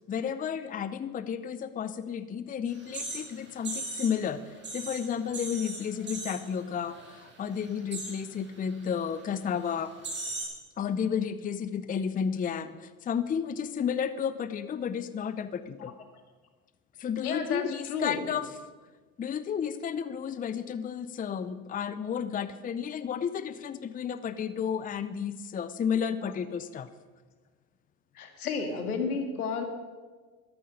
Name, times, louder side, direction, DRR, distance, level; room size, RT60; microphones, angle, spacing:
voice 1, 0.1-10.0 10.8-15.9 17.0-18.5 19.2-26.9, left 7 dB, 20° left, 14 dB, 0.6 m, -32 dB
sound 1, 2.7-4.2 4.5-6.6 6.9-7.2 7.5-8.2 8.9-9.0 9.6-9.7 10.0-10.5, right 2 dB, 25° right, 5.6 m, -38 dB
voice 2, 17.2-18.2 26.2-26.3 28.2-29.7, left 5 dB, 85° left, 6 dB, 1.9 m, -32 dB
14.0 x 12.5 x 5.2 m, 1.4 s
hypercardioid pair, 80°, 43 cm